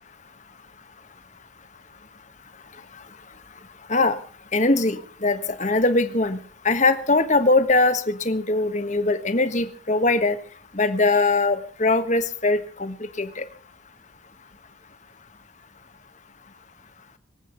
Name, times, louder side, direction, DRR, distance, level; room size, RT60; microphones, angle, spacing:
voice 1, 4.5-6.4 6.6-10.4 10.7-13.4, left 2 dB, 40° left, 10 dB, 1.4 m, -21 dB
24.0 x 8.7 x 5.7 m, 0.43 s
head